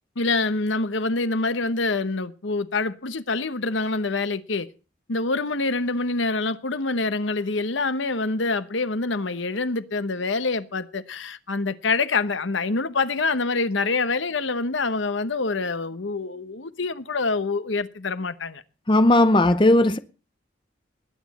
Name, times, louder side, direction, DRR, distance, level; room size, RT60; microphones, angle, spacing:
voice 1, 0.2-4.7 5.1-18.6, left 3 dB, 75° left, 1.0 m, -26 dB
voice 2, 18.9-20.0, left 1 dB, 25° left, 0.6 m, -17 dB
20.0 x 9.5 x 4.2 m
head